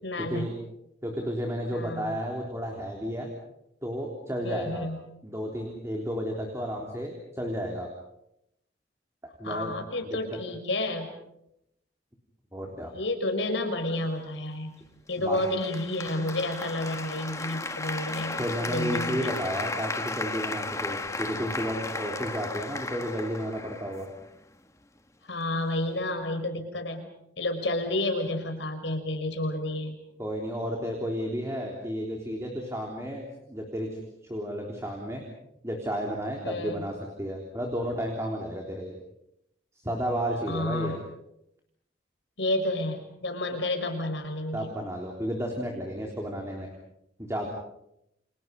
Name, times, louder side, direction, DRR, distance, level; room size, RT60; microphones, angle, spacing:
voice 1, 0.0-0.5 1.7-2.2 4.4-5.0 9.4-11.1 12.8-14.8 15.1-19.3 25.3-27.1 27.4-30.0 36.4-36.8 40.5-40.9 42.4-44.7, left 1 dB, 75° left, 5 dB, 5.7 m, -30 dB
voice 2, 1.0-3.3 3.8-4.9 5.2-7.9 9.4-9.8 10.0-10.2 12.5-12.9 15.2-15.4 18.4-24.1 30.2-34.0 34.3-35.2 35.6-38.9 39.8-41.0 44.5-46.7 47.2-47.5, equal, 15° right, 0 dB, 3.6 m, -32 dB
Applause, 15.3-24.4, left 3 dB, 15° left, 1.4 m, -35 dB
29.5 x 28.0 x 5.4 m, 0.81 s
head